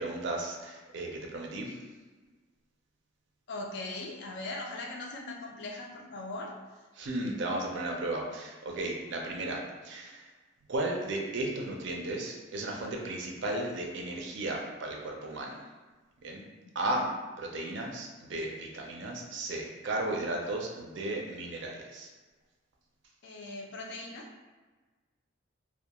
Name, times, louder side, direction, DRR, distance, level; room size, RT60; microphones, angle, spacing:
voice 1, 0.0-1.8 7.0-10.2 10.7-15.6 16.2-16.4 16.7-17.0 17.4-22.1, right 2 dB, 60° right, 0 dB, 0.4 m, -35 dB
voice 2, 3.5-6.5 16.9-17.1 23.2-24.3, left 2 dB, 55° left, 0 dB, 0.4 m, -40 dB
2.2 x 2.1 x 2.9 m, 1.3 s
head